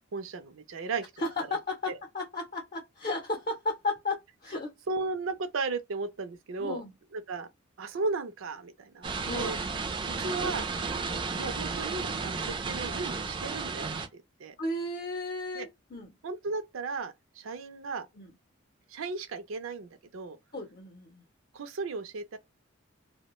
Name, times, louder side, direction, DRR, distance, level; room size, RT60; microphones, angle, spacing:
voice 1, 0.1-1.1 1.5-1.6 1.9-2.0 4.9-6.8 7.1-7.5 7.8-9.6 10.0-14.5 15.5-15.7 16.2-18.1 18.9-20.4 21.5-22.4, right 3 dB, 85° right, 0.5 m, -35 dB
voice 2, 1.2-4.7 6.6-6.9 9.3-9.6 12.2-12.4 14.6-16.2 18.2-18.3 20.5-21.2, left 2 dB, 45° left, 0.6 m, -34 dB
sound 1, 9.0-14.1, right 4 dB, 25° right, 0.3 m, -33 dB
2.3 x 2.1 x 2.9 m
head